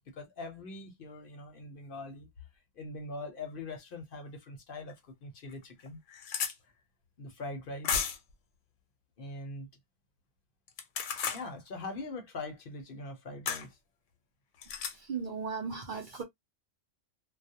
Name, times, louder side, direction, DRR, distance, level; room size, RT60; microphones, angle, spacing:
voice 1, 0.0-2.3 2.8-6.0 6.5-6.7 7.2-8.1 9.2-9.7 11.3-13.8, left 2 dB, 55° left, 0.7 m, -42 dB
sound 1, 4.9-5.0 5.5-5.6 5.8-6.5 7.8-8.3 10.7-11.4 13.5-13.7 14.6-14.9, left 7 dB, 85° left, 0.9 m, -33 dB
voice 2, 14.9-16.2, right 5 dB, 55° right, 0.6 m, -37 dB
2.3 x 2.0 x 2.7 m
omnidirectional pair, 1.2 m